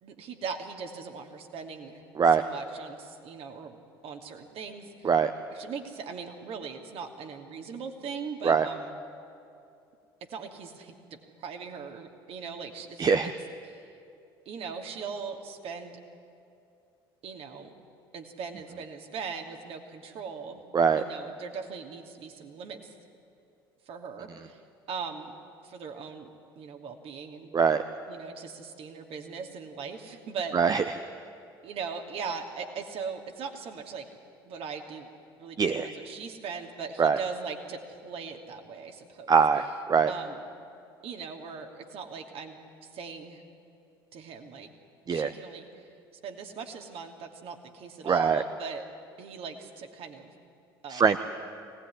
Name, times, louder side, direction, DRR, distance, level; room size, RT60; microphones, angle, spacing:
voice 1, 0.0-2.0 2.3-3.8 4.0-5.1 5.5-9.0 10.3-11.0 11.4-13.3 13.6-13.9 14.4-16.0 17.2-17.7 18.1-20.6 21.0-22.9 23.9-24.6 24.9-25.3 25.6-27.6 28.1-31.1 31.6-34.1 34.5-35.1 35.4-39.4 40.1-40.5 41.0-43.4 44.1-44.7 45.1-45.8 46.2-48.8 49.2-50.3 50.8-51.2, right 5 dB, 50° right, 4 dB, 2.7 m, -40 dB
voice 2, 13.0-13.3 20.7-21.0 27.5-27.8 30.5-30.8 35.6-35.9 37.0-37.2 39.3-40.1 45.1-45.3 48.0-48.4 50.9-51.2, right 6 dB, 30° right, 9 dB, 0.9 m, -22 dB
23.0 x 18.5 x 10.0 m, 2.6 s
figure-of-eight pair, 60°, 12 cm